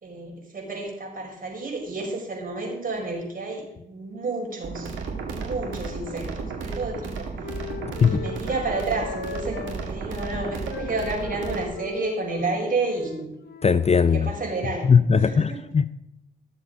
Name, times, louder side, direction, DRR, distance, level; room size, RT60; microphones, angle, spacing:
voice 1, 0.0-4.9 5.2-7.4 8.0-13.3 14.1-15.6, right 3 dB, 45° right, -1 dB, 5.0 m, -31 dB
sound 1, 4.6-11.6, right 4 dB, 70° right, 2.0 m, -33 dB
Wind instrument woodwind instrument, 5.8-9.8 10.1-14.6, left 7 dB, 55° left, 1.1 m, -39 dB
voice 2, 13.6-14.3 14.8-15.9, left 6 dB, 30° left, 15 dB, 0.6 m, -19 dB
14.5 x 7.2 x 5.3 m, 0.83 s
hypercardioid pair, 40°, 20 cm